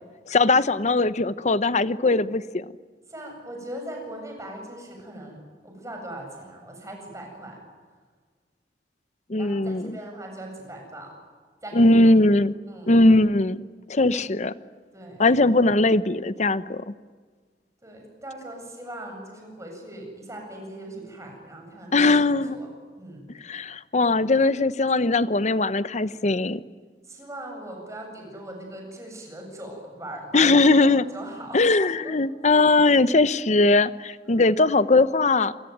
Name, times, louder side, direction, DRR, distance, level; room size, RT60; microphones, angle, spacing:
voice 1, 0.3-2.6 9.3-10.0 11.7-12.5 12.9-13.6 13.9-14.5 15.2-16.9 21.9-22.6 23.4-26.6 30.3-31.0 31.5-35.5, left 2 dB, 40° left, 15 dB, 0.8 m, -20 dB
voice 2, 3.1-7.6 9.3-11.1 11.6-12.1 12.7-12.9 14.1-14.3 14.9-15.2 17.8-22.2 22.5-22.7 23.0-23.3 27.0-32.1 34.2-34.6, right 1 dB, 15° right, 2 dB, 7.6 m, -40 dB
28.5 x 22.0 x 9.3 m, 1.5 s
head